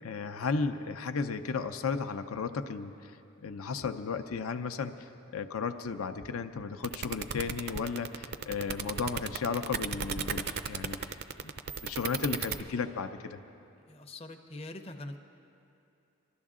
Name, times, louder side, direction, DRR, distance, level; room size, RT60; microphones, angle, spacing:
voice 1, 0.0-11.5 11.8-13.4, left 5 dB, 75° left, 8 dB, 0.6 m, -34 dB
sound 1, 6.8-12.6, right 7 dB, 45° right, 0.5 m, -34 dB
voice 2, 13.9-15.2, left 2 dB, 25° left, 5 dB, 0.6 m, -43 dB
23.0 x 12.5 x 3.7 m, 2.6 s
head